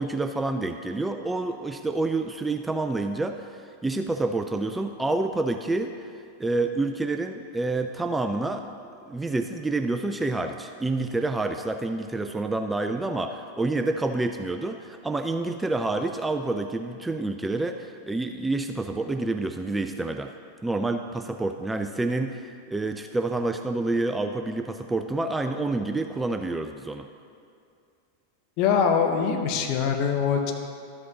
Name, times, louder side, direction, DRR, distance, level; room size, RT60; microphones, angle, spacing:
voice 1, 0.0-6.1 6.4-8.7 9.1-20.3 20.6-27.1, right 2 dB, 10° right, 6 dB, 0.3 m, -28 dB
voice 2, 28.6-30.5, left 6 dB, 45° left, 4 dB, 0.9 m, -23 dB
12.5 x 7.9 x 2.9 m, 2.4 s
figure-of-eight pair, 90°, 0 cm